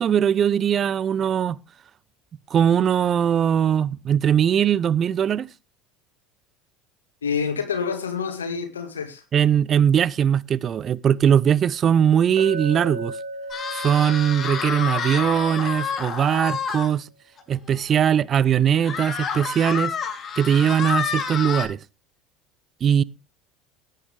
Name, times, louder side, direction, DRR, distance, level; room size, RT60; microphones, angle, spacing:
voice 1, 0.0-1.6 2.5-5.5 9.3-13.1 13.7-17.0 17.5-19.9 20.4-21.8 22.8-23.0, right 9 dB, 40° right, 0.5 m, -20 dB
voice 2, 7.2-9.2, left 6 dB, 85° left, 2.0 m, -27 dB
Chink clink, 12.4-16.5, right 1 dB, 75° right, 3.0 m, -37 dB
sound 1, 13.5-16.9 17.4-17.5 17.8-17.9 18.8-21.7, left 6 dB, 35° left, 3.5 m, -28 dB
17.5 x 9.2 x 3.5 m
figure-of-eight pair, 70°, 0 cm